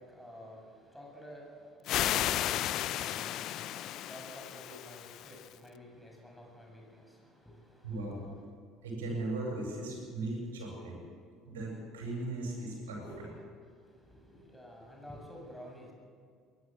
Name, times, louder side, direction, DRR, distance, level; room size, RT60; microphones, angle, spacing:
voice 1, 0.0-8.4 12.7-12.8 13.0-13.3 13.7-15.9, equal, 5° left, 0 dB, 7.4 m, -51 dB
sound 1, 1.9-5.5, left 12 dB, 55° left, 0.7 m, -34 dB
voice 2, 7.8-8.2 8.8-11.0 11.4-13.0, right 2 dB, 75° right, -1 dB, 7.9 m, -37 dB
22.0 x 17.0 x 7.7 m, 2.1 s
figure-of-eight pair, 60°, 0 cm